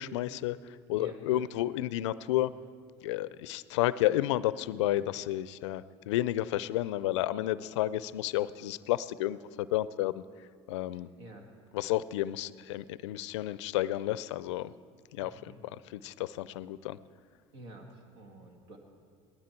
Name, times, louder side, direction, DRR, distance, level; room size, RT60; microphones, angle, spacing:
voice 1, 0.0-2.5 3.0-10.2 10.7-11.1 11.7-14.7 15.1-15.3 15.9-17.0, left 14 dB, 85° left, 18 dB, 0.4 m, -31 dB
voice 2, 0.9-1.5 10.9-11.5 15.2-15.7 17.5-18.8, right 1 dB, 80° right, 2 dB, 2.1 m, -50 dB
18.5 x 13.0 x 4.5 m, 2.1 s
hypercardioid pair, 75°, 15 cm